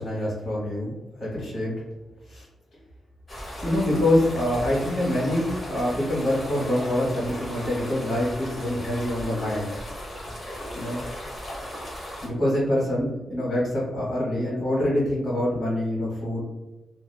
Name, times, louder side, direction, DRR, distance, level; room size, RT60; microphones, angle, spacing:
voice 1, 0.0-1.7 2.3-2.5 3.6-9.7 10.7-11.0 12.2-16.4, left 1 dB, 50° left, -6 dB, 1.5 m, -25 dB
sound 1, 3.3-12.3, equal, 35° left, 0.8 m, -37 dB
2.8 x 2.0 x 2.2 m, 1.1 s
cardioid pair, 105°, 0 cm